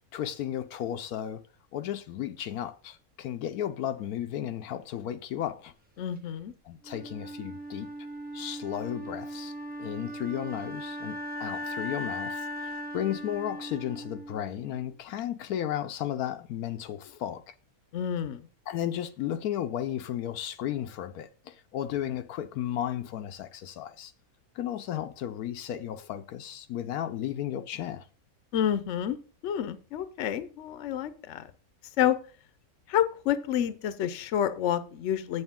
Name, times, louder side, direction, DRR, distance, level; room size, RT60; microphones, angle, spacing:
voice 1, 0.1-1.4 1.7-5.7 6.7-7.9 8.3-9.5 9.8-17.5 18.7-24.1 24.5-28.0, left 11 dB, 80° left, 1.1 m, -34 dB
voice 2, 6.0-6.5 17.9-18.5 28.5-29.2 29.4-31.5 32.0-32.2 32.9-35.4, left 10 dB, 60° left, 0.9 m, -29 dB
Wind instrument woodwind instrument, 6.8-14.9, equal, 10° right, 0.7 m, -38 dB
8.1 x 8.0 x 3.6 m
omnidirectional pair, 1.6 m